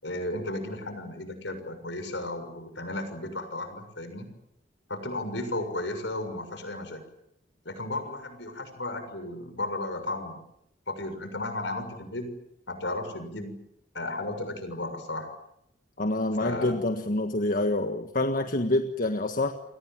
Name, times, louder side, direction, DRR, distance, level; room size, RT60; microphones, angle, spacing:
voice 1, 0.0-4.3 4.9-7.0 7.6-10.4 10.9-12.3 12.7-13.5 13.9-15.3 16.4-16.7, left 2 dB, 70° left, 9 dB, 6.7 m, -34 dB
voice 2, 16.0-19.5, left 2 dB, 50° left, 6 dB, 1.6 m, -27 dB
30.0 x 24.0 x 7.6 m, 0.78 s
head